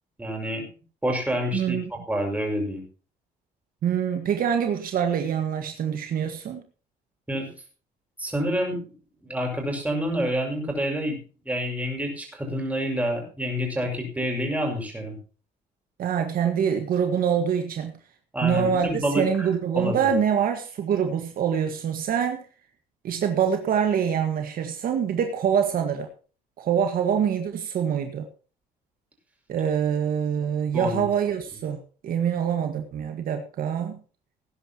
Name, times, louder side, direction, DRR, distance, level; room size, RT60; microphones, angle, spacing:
voice 1, 0.2-0.6 1.0-2.8 7.3-7.5 8.2-8.8 9.2-11.2 11.4-15.2 18.3-19.5 19.7-20.1 30.7-31.1, equal, 10° right, 1 dB, 5.9 m, -28 dB
voice 2, 1.5-1.8 3.8-6.6 16.0-17.9 18.4-22.4 23.0-26.1 26.6-28.3 29.5-34.0, right 8 dB, 60° right, 5 dB, 1.7 m, -25 dB
19.0 x 10.5 x 3.0 m, 0.37 s
cardioid pair, 110°, 17 cm